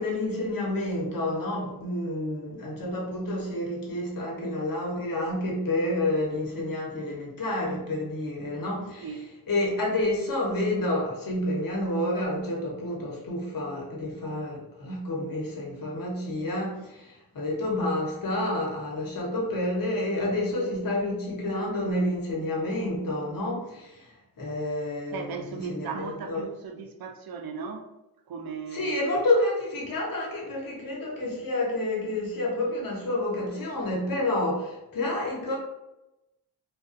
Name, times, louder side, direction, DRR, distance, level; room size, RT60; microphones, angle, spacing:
voice 1, 0.0-9.1 9.5-26.4 28.7-35.6, left 1 dB, 60° left, -2 dB, 1.0 m, -29 dB
voice 2, 25.1-27.9 28.3-29.0, right 5 dB, 65° right, 4 dB, 0.5 m, -36 dB
2.3 x 2.2 x 2.5 m, 0.95 s
cardioid pair, 80°, 39 cm